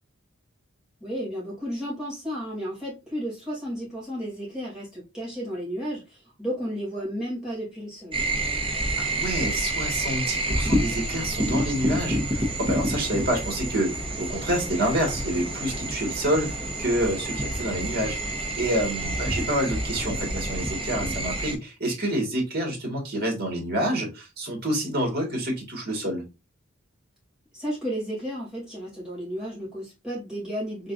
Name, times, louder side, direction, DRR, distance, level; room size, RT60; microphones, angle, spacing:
voice 1, 1.0-8.2 27.5-30.9, equal, 5° right, 2.6 m, -33 dB
sound 1, 8.1-21.5, right 1 dB, 25° right, 0.9 m, -28 dB
voice 2, 9.0-13.9 14.2-16.5 16.8-26.2, right 1 dB, 50° right, 1.7 m, -28 dB
3.9 x 3.7 x 2.5 m
head